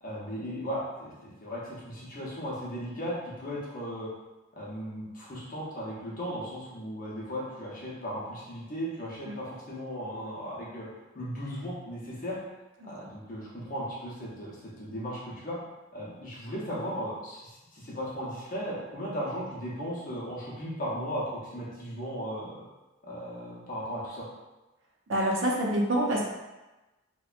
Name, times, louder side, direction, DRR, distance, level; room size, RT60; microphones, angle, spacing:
voice 1, 0.0-4.1 4.5-10.9 11.1-12.4 12.8-15.6 15.9-22.6 23.0-24.3, equal, 40° left, -6 dB, 0.6 m, -36 dB
voice 2, 25.1-26.2, right 1 dB, 65° right, -1 dB, 0.5 m, -26 dB
2.6 x 2.1 x 2.4 m, 1.1 s
head